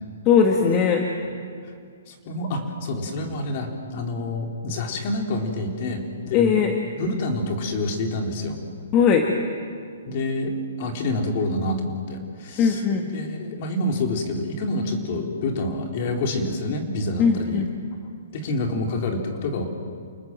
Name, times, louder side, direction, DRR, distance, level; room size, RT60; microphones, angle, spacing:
voice 1, 0.3-1.0 6.3-6.7 8.9-9.3 12.6-13.0 17.2-17.7, left 6 dB, 30° left, 3 dB, 1.9 m, -19 dB
voice 2, 2.1-6.6 7.0-8.6 10.1-12.8 13.1-17.6 18.3-19.7, left 2 dB, 45° left, 2 dB, 4.0 m, -27 dB
28.5 x 20.0 x 7.7 m, 2.2 s
hypercardioid pair, 145°, 0 cm